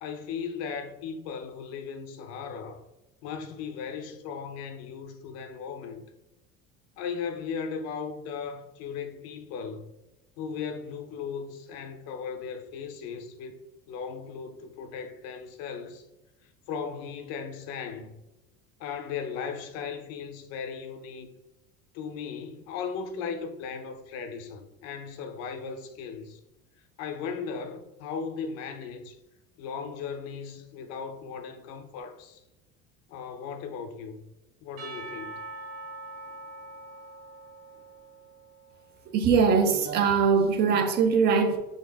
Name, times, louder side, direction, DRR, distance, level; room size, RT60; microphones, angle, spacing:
voice 1, 0.0-2.8 3.2-6.0 7.0-9.9 10.4-13.6 13.9-16.0 16.7-18.2 18.8-21.3 21.9-26.4 27.0-29.2 29.6-32.4 33.1-34.3 34.6-35.4, left 6 dB, 55° left, 0.6 m, -37 dB
Percussion / Church bell, 34.8-38.9, right 2 dB, 80° right, 1.6 m, -43 dB
voice 2, 39.1-41.6, right 5 dB, 35° right, 0.5 m, -22 dB
4.0 x 3.4 x 3.4 m
cardioid pair, 175°, 31 cm